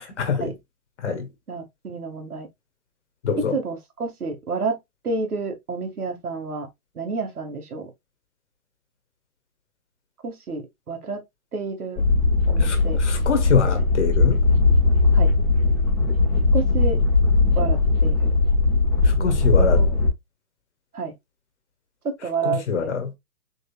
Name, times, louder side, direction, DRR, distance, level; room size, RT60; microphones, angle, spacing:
voice 1, 0.2-0.5 1.0-1.2 3.2-3.5 12.6-14.4 19.2-19.8 22.4-23.1, left 6 dB, 50° left, 1.6 m, -24 dB
voice 2, 1.5-2.5 3.4-4.8 5.0-6.7 7.0-7.9 10.2-11.2 11.5-12.0 12.5-13.0 15.1-15.3 16.5-17.0 17.6-18.3 19.6-19.9 20.9-21.1 22.0-22.9, right 4 dB, 80° right, 2.1 m, -29 dB
sound 1, 12.0-20.1, left 3 dB, 5° left, 1.2 m, -19 dB
5.2 x 3.6 x 2.4 m
hypercardioid pair, 150°, 44 cm